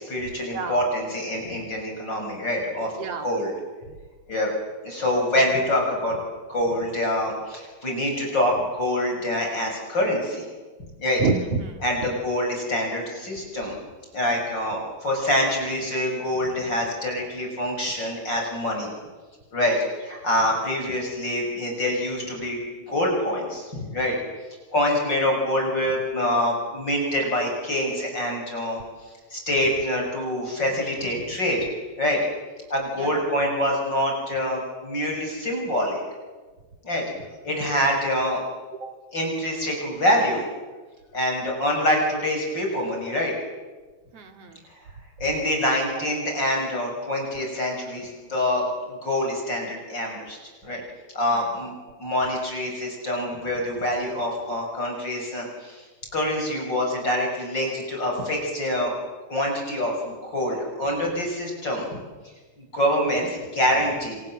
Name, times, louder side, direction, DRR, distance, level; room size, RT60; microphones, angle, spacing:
voice 1, 0.0-2.9 3.2-3.5 4.3-4.5 4.8-6.2 6.5-10.5 11.0-11.2 11.8-13.8 14.1-18.9 19.5-22.6 22.9-24.1 24.7-28.8 29.3-31.6 32.0-32.2 32.7-36.0 36.8-37.0 37.4-38.4 39.1-40.5 41.1-43.3 45.2-50.4 50.6-50.8 51.1-55.8 56.1-58.9 59.3-61.9 62.6-64.2, left 1 dB, 25° left, 0 dB, 6.7 m, -25 dB
voice 2, 3.0-3.3 5.4-5.5 11.2-11.8 33.0-33.2 38.8-38.9 44.1-44.6 51.3-51.5, right 4 dB, 45° right, 6 dB, 2.5 m, -28 dB
29.0 x 27.0 x 7.7 m, 1.4 s
omnidirectional pair, 5.0 m